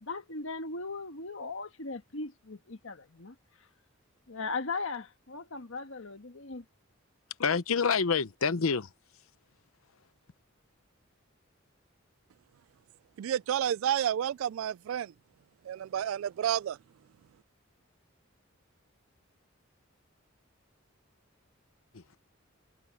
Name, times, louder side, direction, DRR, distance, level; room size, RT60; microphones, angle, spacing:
voice 1, 0.0-3.3 4.3-6.6, left 3 dB, 70° left, 1.5 m, -38 dB
voice 2, 7.4-8.9 21.9-22.2, left 5 dB, 90° left, 0.9 m, -27 dB
voice 3, 13.2-15.1 15.6-16.8, right 10 dB, 75° right, 0.3 m, -30 dB
head